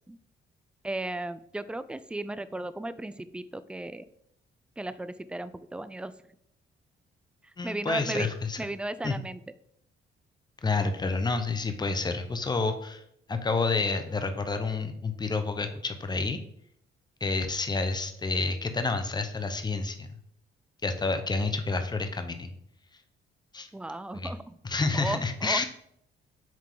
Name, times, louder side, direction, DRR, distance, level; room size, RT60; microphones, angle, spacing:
voice 1, 0.8-4.1 4.8-6.1 7.4-8.3 8.6-9.4 23.7-24.5 24.9-25.6, right 2 dB, 5° right, 14 dB, 0.3 m, -35 dB
voice 2, 7.6-8.6 9.0-9.1 10.6-13.0 13.3-16.4 17.2-20.1 20.8-22.5 23.5-23.7 24.1-24.3 24.6-25.6, left 3 dB, 20° left, 7 dB, 0.8 m, -29 dB
7.4 x 3.6 x 3.8 m, 0.72 s
cardioid pair, 90°, 20 cm